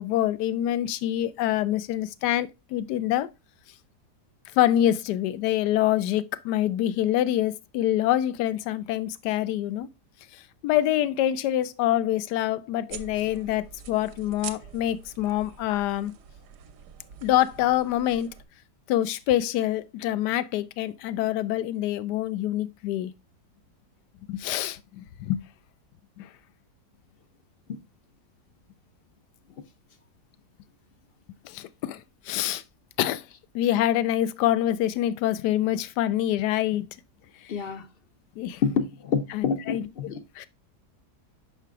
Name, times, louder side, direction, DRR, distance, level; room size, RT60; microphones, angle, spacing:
voice 1, 0.0-3.3 4.6-9.9 10.6-16.1 17.2-18.3 18.9-23.1 24.3-25.4 26.2-26.3 31.4-32.0 32.3-32.6 33.0-33.2 33.5-36.8 38.4-38.6 39.3-39.9 40.4-40.5, left 12 dB, 80° left, 1.2 m, -25 dB
sound 1, 12.9-18.4, right 8 dB, 75° right, 1.3 m, -45 dB
voice 2, 37.5-37.9 38.6-40.2, left 6 dB, 60° left, 0.6 m, -27 dB
5.8 x 5.7 x 3.5 m
omnidirectional pair, 1.8 m